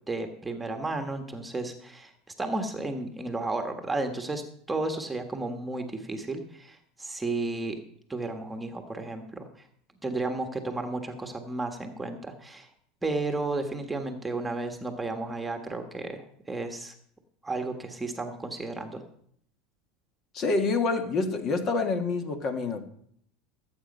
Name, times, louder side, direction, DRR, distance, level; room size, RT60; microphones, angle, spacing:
voice 1, 0.1-2.1 2.4-4.4 4.7-7.8 8.1-9.6 10.0-12.7 13.0-16.9 17.4-19.0, right 2 dB, 10° right, 5 dB, 1.5 m, -33 dB
voice 2, 20.3-22.8, left 3 dB, 40° left, 6 dB, 1.9 m, -27 dB
16.5 x 8.4 x 5.4 m, 0.67 s
supercardioid pair, 120°, 0 cm